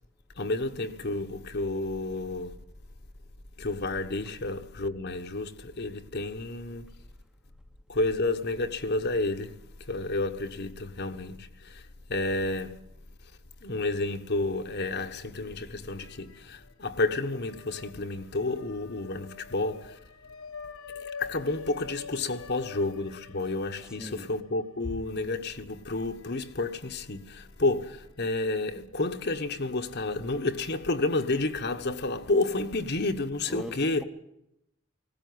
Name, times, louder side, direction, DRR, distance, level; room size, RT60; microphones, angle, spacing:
voice 1, 0.4-2.6 3.6-6.9 7.9-9.6 9.9-11.8 12.1-12.7 13.6-20.0 21.0-34.0, left 2 dB, 50° left, 1.3 m, -30 dB
sound 1, 16.0-16.8 17.1-27.4 27.8-27.9 29.0-32.4, left 5 dB, 75° left, 1.2 m, -48 dB
voice 2, 23.8-24.3 33.5-34.0, equal, 5° right, 1.0 m, -41 dB
19.5 x 17.5 x 9.6 m
head